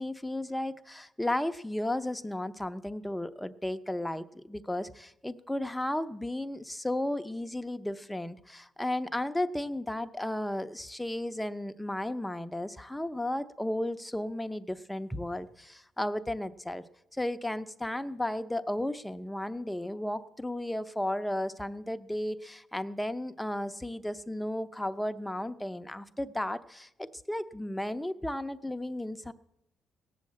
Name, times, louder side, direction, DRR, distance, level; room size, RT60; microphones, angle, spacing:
voice 1, 0.0-16.8 17.1-29.3, left 1 dB, 5° left, 9 dB, 0.7 m, -34 dB
17.0 x 7.4 x 8.7 m, 0.86 s
cardioid pair, 90°, 0 cm